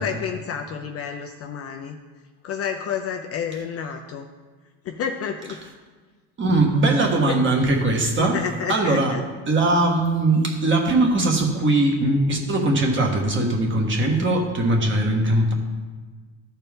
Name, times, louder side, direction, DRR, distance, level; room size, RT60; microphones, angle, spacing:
voice 1, 0.0-2.0 2.4-4.3 4.8-5.6 7.3-7.4 8.2-9.2, left 7 dB, 35° left, 4 dB, 0.5 m, -30 dB
voice 2, 6.4-8.4 8.7-9.1 9.5-15.5, right 2 dB, 25° right, 1 dB, 1.4 m, -20 dB
13.0 x 4.4 x 3.6 m, 1.4 s
supercardioid pair, 120°, 43 cm